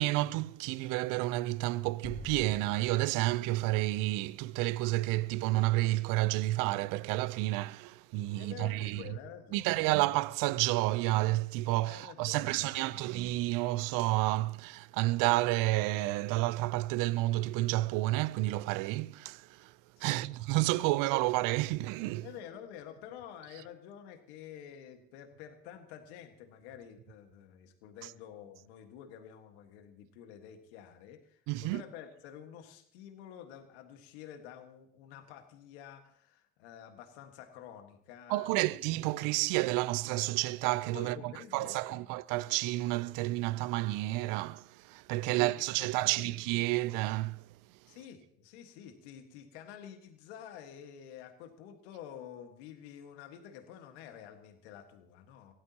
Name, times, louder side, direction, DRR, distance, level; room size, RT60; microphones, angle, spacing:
voice 1, 0.0-9.0 9.5-19.7 20.0-22.3 31.5-31.8 38.3-47.4, right 18 dB, 80° right, 0.6 m, -30 dB
Explosion, 2.0-5.3, left 5 dB, 20° left, 0.7 m, -50 dB
voice 2, 8.3-9.8 11.8-13.1 20.0-20.3 22.2-38.9 40.9-42.0 45.2-46.4 47.9-55.5, left 9 dB, 85° left, 1.6 m, -49 dB
23.5 x 16.5 x 2.9 m
hypercardioid pair, 45°, 32 cm